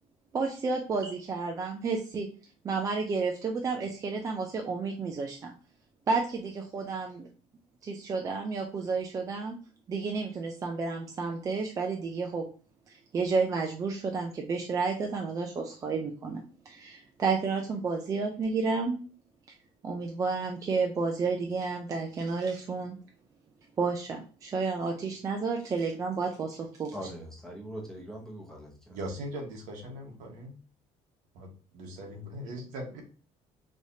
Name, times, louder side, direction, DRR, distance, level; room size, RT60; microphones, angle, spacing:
voice 1, 0.3-2.3 2.6-5.5 6.1-7.3 7.8-9.6 9.9-12.5 12.9-19.0 19.8-23.0 23.8-27.0, right 4 dB, 25° right, 2 dB, 0.5 m, -31 dB
voice 2, 26.9-29.0, right 1 dB, 5° left, -1 dB, 1.0 m, -42 dB
voice 3, 28.9-30.6 31.3-33.0, equal, 80° right, 1 dB, 1.4 m, -40 dB
4.9 x 3.2 x 2.7 m, 0.39 s
cardioid pair, 170°, 13 cm